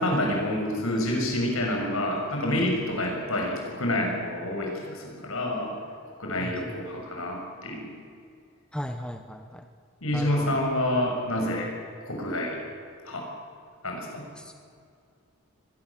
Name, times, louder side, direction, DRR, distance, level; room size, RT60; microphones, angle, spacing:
voice 1, 0.0-5.7 6.2-7.9 10.0-11.7 12.1-12.6 13.0-13.3 13.8-14.2, left 1 dB, 75° left, 1 dB, 6.7 m, -28 dB
voice 2, 6.4-6.8 8.7-9.7 10.1-10.6 14.4-14.5, equal, 5° left, 5 dB, 1.1 m, -37 dB
24.0 x 20.5 x 7.5 m, 2.4 s
head